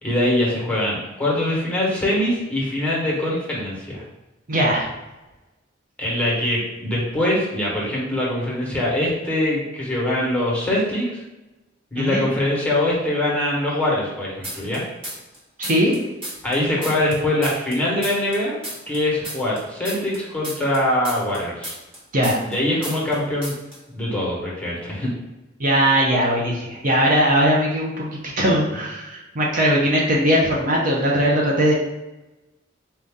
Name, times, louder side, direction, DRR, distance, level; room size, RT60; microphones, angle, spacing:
voice 1, 0.0-4.0 6.0-11.2 11.9-14.8 16.4-18.6 18.9-21.7 22.5-23.5 23.9-25.1, left 1 dB, 5° left, -5 dB, 1.2 m, -23 dB
voice 2, 4.5-4.9 12.0-12.3 15.6-15.9 22.1-22.4 25.6-31.8, equal, 45° right, -2 dB, 0.7 m, -19 dB
sound 1, 14.4-15.4 15.6-18.4 18.6-22.6 22.8-23.2 23.4-23.8, right 1 dB, 30° right, 1.3 m, -33 dB
4.3 x 2.7 x 3.6 m, 1.0 s
head